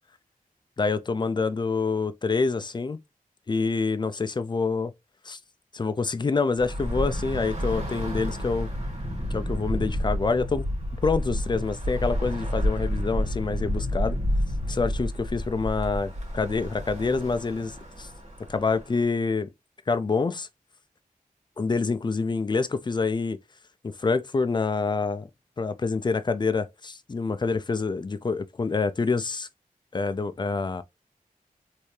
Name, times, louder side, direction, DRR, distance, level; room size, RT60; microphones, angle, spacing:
voice 1, 0.8-3.0 3.5-4.9 5.3-5.4 5.7-8.7 9.3-10.6 11.0-14.2 14.7-18.1 18.5-19.5 19.9-20.5 21.6-23.4 23.8-25.3 25.6-29.5 29.9-30.8, left 4 dB, 30° left, 0.4 m, -26 dB
Bus / Traffic noise roadway noise, 6.6-19.0, equal, 50° right, 2.0 m, -30 dB
3.3 x 2.6 x 3.2 m
wide cardioid pair, 70°, 15 cm